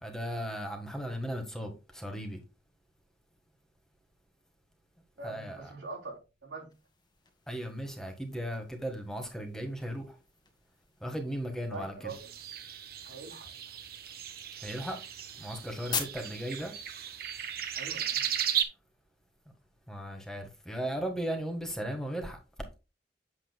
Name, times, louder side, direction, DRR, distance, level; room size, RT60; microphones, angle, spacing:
voice 1, 0.0-2.4 5.2-5.6 7.5-10.1 11.0-12.1 14.6-15.0 15.4-16.7 19.9-22.4, equal, 5° left, 1.5 m, -36 dB
voice 2, 5.2-6.7 11.7-12.3 13.0-13.8 16.1-16.2 17.7-18.4, right 3 dB, 85° right, 3.3 m, -44 dB
sound 1, 6.7-18.5, left 6 dB, 25° left, 1.4 m, -46 dB
sound 2, 12.1-18.6, right 9 dB, 55° right, 1.1 m, -36 dB
8.6 x 7.7 x 2.2 m
head